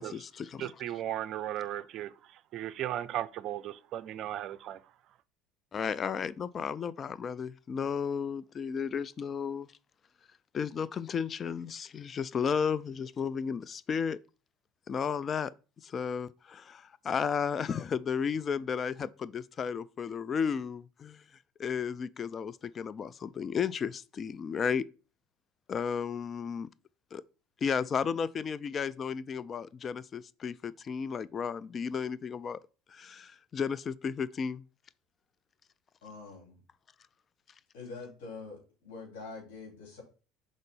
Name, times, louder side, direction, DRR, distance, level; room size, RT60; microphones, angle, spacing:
voice 1, 0.0-0.8 5.7-9.7 10.5-14.2 14.9-15.5 15.8-21.2 21.6-24.8 25.7-26.7 27.1-27.2 27.6-32.6 32.9-34.6, left 6 dB, 35° left, 0.4 m, -33 dB
voice 2, 0.6-2.1 2.5-4.8, right 12 dB, 55° right, 0.5 m, -36 dB
voice 3, 36.0-36.6 37.7-40.0, left 4 dB, 75° left, 3.3 m, -45 dB
5.2 x 3.9 x 5.4 m
hypercardioid pair, 75°, 0 cm